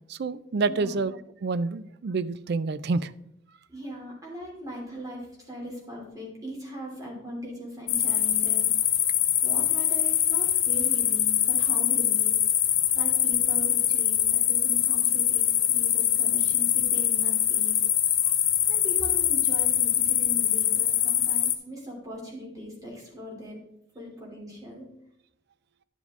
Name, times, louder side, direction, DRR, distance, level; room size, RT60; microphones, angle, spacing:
voice 1, 0.0-3.1, right 4 dB, 55° right, 0.4 m, -28 dB
voice 2, 0.6-1.0 3.7-8.7 9.4-12.4 12.9-17.8 18.7-23.6 23.9-24.9, equal, 20° right, 3.0 m, -40 dB
sound 1, 7.9-21.5, left 11 dB, 90° left, 0.9 m, -23 dB
10.5 x 7.2 x 3.6 m
head